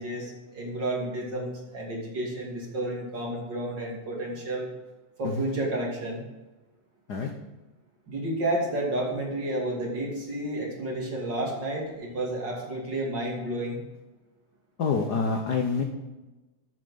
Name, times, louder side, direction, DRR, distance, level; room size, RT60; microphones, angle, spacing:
voice 1, 0.0-4.7 5.2-6.2 8.1-13.8, right 1 dB, 40° right, -1 dB, 3.1 m, -31 dB
voice 2, 14.8-15.8, left 5 dB, 75° left, 3 dB, 0.9 m, -27 dB
13.0 x 7.6 x 5.5 m, 1.1 s
omnidirectional pair, 3.3 m